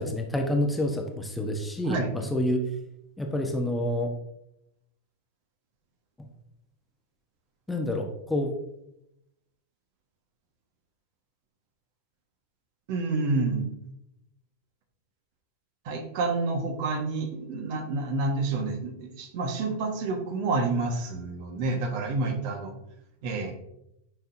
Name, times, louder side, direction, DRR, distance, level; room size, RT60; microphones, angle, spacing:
voice 1, 0.0-2.6 3.2-4.1 7.7-8.5, left 1 dB, 5° left, 3 dB, 1.0 m, -28 dB
voice 2, 12.9-13.7 15.8-22.7 23.2-23.5, right 3 dB, 45° right, 4 dB, 1.5 m, -29 dB
10.5 x 5.9 x 2.8 m, 0.82 s
figure-of-eight pair, 90°, 0 cm